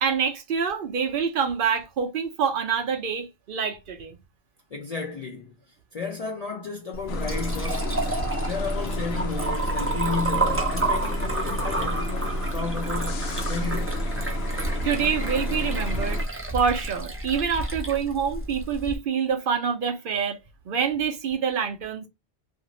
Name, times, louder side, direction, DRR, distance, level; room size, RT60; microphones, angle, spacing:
voice 1, 0.0-4.2 14.8-16.2 16.5-20.4 20.7-22.1, right 6 dB, 65° right, 0.7 m, -26 dB
voice 2, 4.7-14.0, left 4 dB, 50° left, 0.5 m, -33 dB
Liquid, 6.9-19.0, right 2 dB, 15° right, 0.5 m, -31 dB
sound 1, 7.1-16.2, equal, 80° left, 0.9 m, -29 dB
2.5 x 2.5 x 2.9 m
omnidirectional pair, 1.1 m